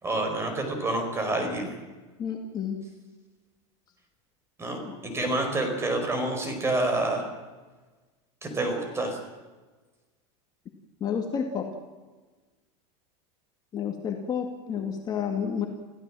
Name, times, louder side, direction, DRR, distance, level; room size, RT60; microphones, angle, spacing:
voice 1, 0.0-1.7 4.6-7.2 8.4-9.2, right 2 dB, 15° right, 5 dB, 5.0 m, -28 dB
voice 2, 2.2-2.8 4.8-5.0 11.0-11.7 13.7-15.7, left 7 dB, 25° left, 2 dB, 2.2 m, -30 dB
27.0 x 16.0 x 7.6 m, 1.3 s
supercardioid pair, 150°, 16 cm